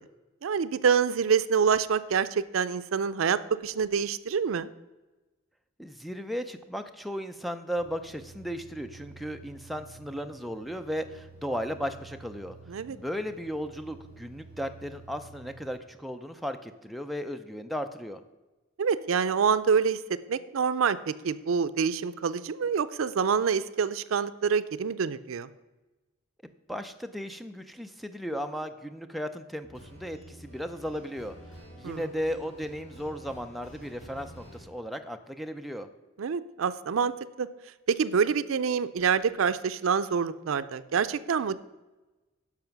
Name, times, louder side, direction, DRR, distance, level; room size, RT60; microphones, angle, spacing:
voice 1, 0.4-4.7 12.7-13.0 18.8-20.0 20.3-25.5 31.8-32.0 36.2-37.1 37.4-37.5 37.9-41.6, right 6 dB, 85° right, 15 dB, 0.4 m, -26 dB
voice 2, 5.8-12.6 12.9-18.2 26.7-31.4 31.8-35.9, equal, ahead, 6 dB, 0.5 m, -35 dB
sound 1, 7.8-15.8, right 3 dB, 45° right, 3.8 m, -51 dB
sound 2, 29.6-34.6, equal, 35° left, 3.3 m, -49 dB
10.5 x 6.1 x 5.9 m, 1.1 s
head